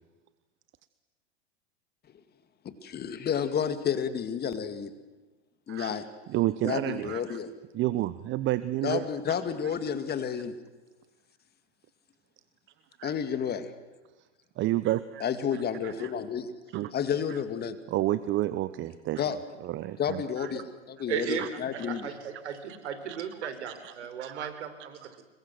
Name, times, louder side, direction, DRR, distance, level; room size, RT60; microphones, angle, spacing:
voice 1, 2.6-4.9 5.7-6.0 6.6-7.5 8.8-10.5 13.0-13.7 15.2-16.5 16.9-17.8 19.2-19.4 20.0-22.1, left 7 dB, 30° left, 10 dB, 2.3 m, -31 dB
voice 2, 6.3-7.4 7.7-9.1 13.0-13.1 14.6-15.2 15.5-16.1 16.7-16.9 17.3-17.4 17.9-19.2 19.6-20.5 21.4-21.9 23.1-23.2 23.4-24.5 25.0-25.1, right 15 dB, 35° right, 15 dB, 0.9 m, -31 dB
voice 3, 21.1-21.4 21.7-25.2, right 8 dB, 75° right, 10 dB, 4.3 m, -36 dB
27.5 x 22.0 x 7.8 m, 1.2 s
hypercardioid pair, 105°, 35 cm